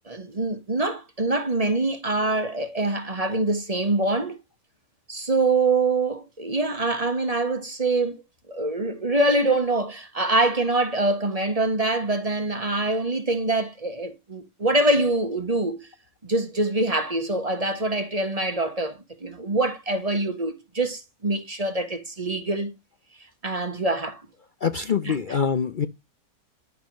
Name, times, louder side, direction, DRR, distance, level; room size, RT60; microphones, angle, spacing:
voice 1, 0.1-4.4 5.1-8.2 8.5-15.9 16.3-22.7 23.4-24.2 25.0-25.4, right 2 dB, 25° right, 1.3 m, -24 dB
voice 2, 24.6-25.9, left 6 dB, 80° left, 0.4 m, -24 dB
10.5 x 6.9 x 3.0 m
omnidirectional pair, 1.8 m